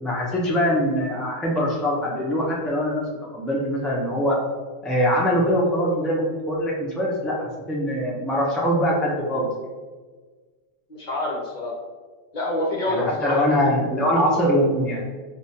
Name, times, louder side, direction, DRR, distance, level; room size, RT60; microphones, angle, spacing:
voice 1, 0.0-3.0 3.3-4.4 4.8-9.5 12.9-15.0, equal, ahead, -4 dB, 0.4 m, -23 dB
voice 2, 10.9-11.8 12.3-13.7, left 1 dB, 45° left, -3 dB, 0.8 m, -27 dB
4.8 x 2.4 x 2.8 m, 1.4 s
omnidirectional pair, 1.3 m